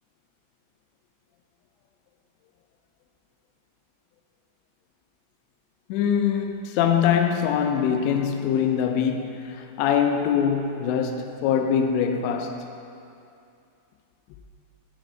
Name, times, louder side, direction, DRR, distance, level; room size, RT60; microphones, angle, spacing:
voice 1, 5.9-12.6, left 8 dB, 90° left, 2.9 m, -23 dB
9.7 x 5.0 x 4.4 m
omnidirectional pair, 5.0 m